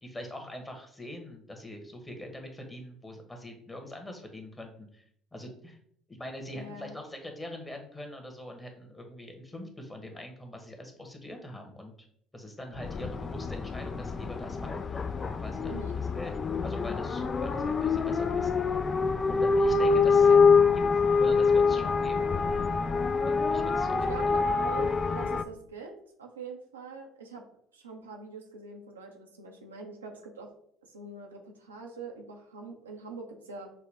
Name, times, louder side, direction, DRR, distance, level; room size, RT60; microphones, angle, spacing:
voice 1, 0.0-5.0 5.3-5.8 6.1-11.9 12.3-15.0 15.4-15.8 16.1-18.5 19.3-20.3 21.2-22.3 23.2-24.3, left 1 dB, 15° left, 3 dB, 1.1 m, -43 dB
voice 2, 6.5-7.0 15.7-16.0 20.2-20.5 23.9-27.4 27.7-30.5 30.8-33.7, right 4 dB, 90° right, 1 dB, 0.6 m, -43 dB
sound 1, 12.8-25.4, left 5 dB, 35° left, 0.3 m, -25 dB
5.9 x 2.2 x 3.4 m, 0.66 s
hypercardioid pair, 60°, 0 cm